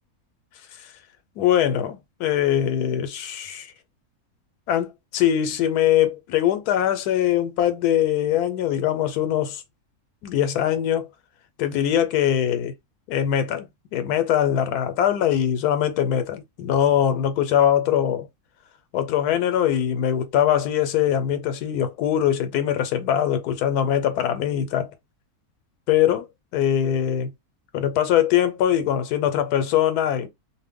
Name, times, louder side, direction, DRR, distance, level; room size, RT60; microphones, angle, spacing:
voice 1, 1.4-3.7 4.7-9.6 10.2-11.1 11.6-12.7 13.1-18.3 18.9-24.9 25.9-26.3 26.5-27.3 27.7-30.3, left 10 dB, 90° left, 1.1 m, -22 dB
2.6 x 2.1 x 3.5 m
omnidirectional pair, 1.6 m